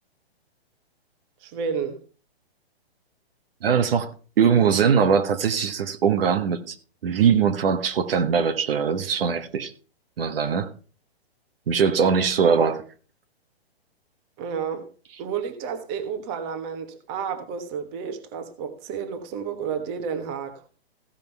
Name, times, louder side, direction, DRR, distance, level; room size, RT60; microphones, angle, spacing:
voice 1, 1.4-2.0 14.4-14.9 15.2-20.6, right 6 dB, 25° right, 1.3 m, -31 dB
voice 2, 3.6-4.1 4.4-6.8 7.0-9.7 10.2-10.7 11.7-12.8, right 6 dB, 65° right, 1.5 m, -21 dB
15.5 x 5.3 x 5.4 m
hypercardioid pair, 155°, 32 cm